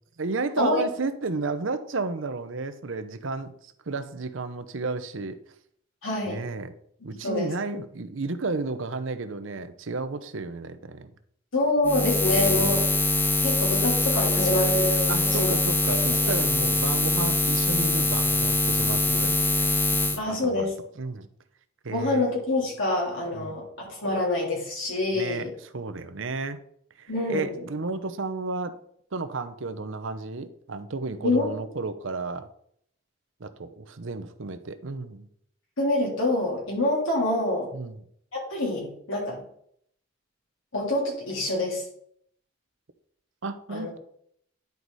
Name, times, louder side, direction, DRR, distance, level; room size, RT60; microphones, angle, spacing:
voice 1, 0.2-5.4 6.3-6.7 7.0-11.1 12.3-12.8 15.1-19.7 20.0-20.7 21.0-21.3 21.8-22.2 23.3-23.6 25.1-26.6 27.0-28.7 29.1-32.5 33.4-35.3 37.7-38.0 43.4-44.0, right 3 dB, 75° right, 10 dB, 0.8 m, -32 dB
voice 2, 6.0-6.4 7.2-7.5 11.5-12.9 13.4-15.5 15.9-16.3 20.2-20.7 21.9-25.5 27.1-27.6 31.2-31.5 35.8-37.7 38.3-39.4 40.7-41.8 43.7-44.0, left 2 dB, 85° left, -3 dB, 3.4 m, -26 dB
Buzz, 11.8-20.2, left 2 dB, 10° left, 0.7 m, -23 dB
10.5 x 4.7 x 4.1 m, 0.67 s
head